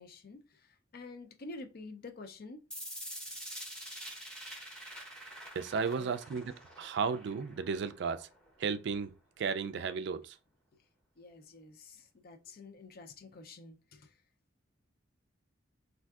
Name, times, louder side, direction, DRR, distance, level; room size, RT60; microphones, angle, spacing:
voice 1, 0.0-2.7 5.9-6.1 11.2-14.2, left 3 dB, 50° left, 0.5 m, -49 dB
sound 1, 2.7-8.7, equal, 5° left, 0.7 m, -46 dB
voice 2, 5.6-8.3 8.6-9.1 9.4-10.4, right 5 dB, 60° right, 0.3 m, -34 dB
3.5 x 2.5 x 2.3 m
head